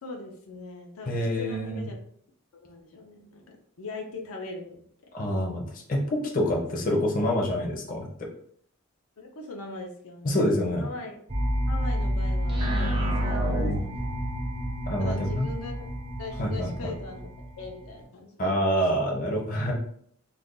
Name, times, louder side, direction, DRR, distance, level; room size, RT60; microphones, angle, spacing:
voice 1, 0.0-2.0 2.6-4.8 9.2-10.5 10.8-11.2 11.7-13.9 15.0-15.8 16.2-17.3 17.6-18.6, left 3 dB, 90° left, 1 dB, 0.5 m, -40 dB
voice 2, 1.1-1.9 5.1-8.1 10.2-10.9 14.9-15.5 16.4-16.9 18.4-19.7, equal, 40° left, 0 dB, 0.6 m, -26 dB
sound 1, 11.3-18.0, equal, 25° right, 0.6 m, -29 dB
2.4 x 2.2 x 3.7 m, 0.64 s
head